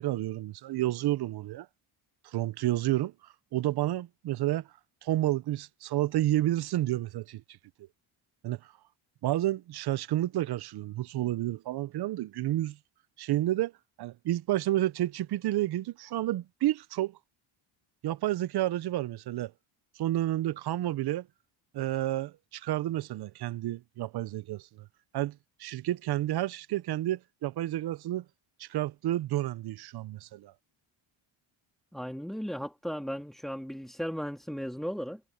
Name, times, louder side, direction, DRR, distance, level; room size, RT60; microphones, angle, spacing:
voice 1, 0.0-1.7 2.2-3.1 3.5-4.7 5.0-7.4 8.4-8.6 9.2-12.8 13.2-13.7 14.0-17.2 18.0-19.5 20.0-21.3 21.7-24.9 25.1-28.2 28.6-30.5, right 14 dB, 50° right, 0.6 m, -30 dB
voice 2, 31.9-35.2, equal, ahead, 2.5 m, -36 dB
cardioid pair, 145°, 50 cm